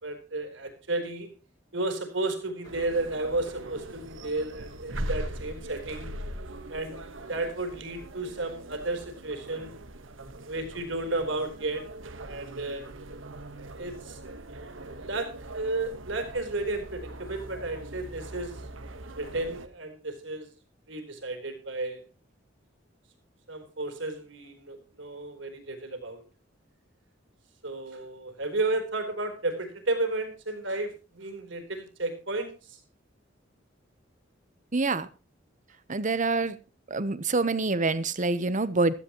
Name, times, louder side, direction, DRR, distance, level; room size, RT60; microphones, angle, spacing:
voice 1, 0.0-1.3 1.7-6.1 6.7-7.0 7.3-9.8 10.5-11.8 12.2-12.9 13.7-14.2 14.9-18.5 19.2-20.5 20.9-22.0 23.5-26.2 27.6-32.8, right 2 dB, 70° right, 5 dB, 4.0 m, -33 dB
sound 1, 2.6-19.7, right 1 dB, 90° right, 1.3 m, -41 dB
voice 2, 34.7-35.1 35.9-36.6 36.9-38.9, right 3 dB, 40° right, 15 dB, 1.0 m, -26 dB
16.0 x 13.5 x 3.0 m, 0.33 s
head